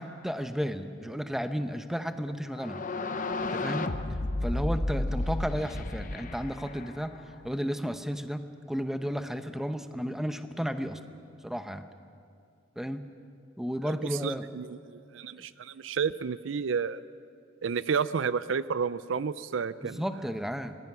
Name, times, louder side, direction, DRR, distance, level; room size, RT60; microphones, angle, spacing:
voice 1, 0.0-2.9 3.4-3.9 4.4-7.1 7.4-11.0 11.4-11.8 12.8-13.0 13.6-14.5 19.8-20.8, equal, ahead, 8 dB, 0.8 m, -33 dB
sound 1, 2.5-7.4, left 2 dB, 40° left, 0.8 m, -32 dB
voice 2, 14.2-17.0 17.6-20.1, right 6 dB, 80° right, 16 dB, 0.5 m, -31 dB
25.5 x 20.0 x 6.1 m, 2.4 s
head